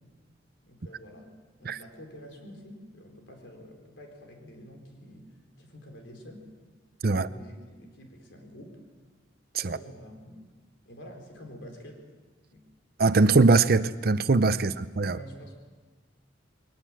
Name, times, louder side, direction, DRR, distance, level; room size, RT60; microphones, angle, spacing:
voice 1, 0.6-6.5 7.0-8.8 9.5-10.5 10.9-12.0 12.5-12.7 15.0-15.6, equal, 75° left, 4.5 m, -48 dB
voice 2, 13.0-15.2, right 3 dB, 55° right, 0.6 m, -22 dB
21.5 x 19.0 x 7.6 m
head